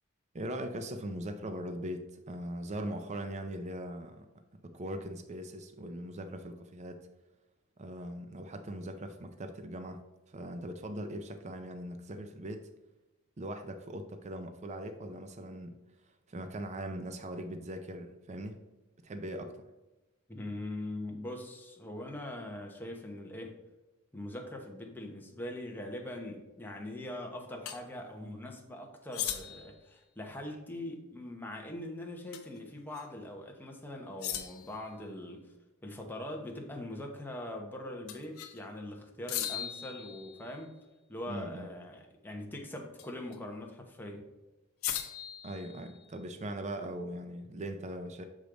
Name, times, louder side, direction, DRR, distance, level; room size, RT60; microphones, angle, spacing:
voice 1, 0.3-7.1 7.8-10.0 10.3-12.7 13.4-18.6 19.0-19.7 41.3-41.7 45.4-48.2, right 1 dB, 30° right, 7 dB, 0.5 m, -40 dB
voice 2, 20.3-23.6 24.1-35.5 35.8-40.7 41.1-44.3, left 1 dB, 10° left, 1 dB, 1.0 m, -42 dB
sound 1, 27.7-27.8 29.1-29.8 32.3-32.6 32.9-33.0 34.2-34.8 38.1-38.6 39.3-40.7 43.0-43.4 44.8-46.2, left 10 dB, 75° left, 0.8 m, -38 dB
6.3 x 5.1 x 3.8 m, 1.1 s
head